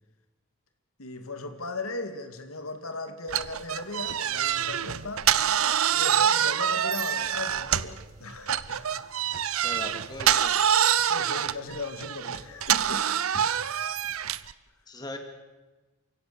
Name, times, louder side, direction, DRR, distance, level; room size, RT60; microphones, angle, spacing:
voice 1, 1.0-5.3 5.9-8.9 9.7-9.9 11.1-13.1, left 3 dB, 90° left, 7 dB, 2.2 m, -37 dB
sound 1, 3.3-8.0 8.5-14.5, right 9 dB, 80° right, 0.7 m, -26 dB
voice 2, 9.6-10.6 14.9-15.2, left 2 dB, 20° left, 4 dB, 2.4 m, -39 dB
28.5 x 16.5 x 7.0 m, 1.2 s
head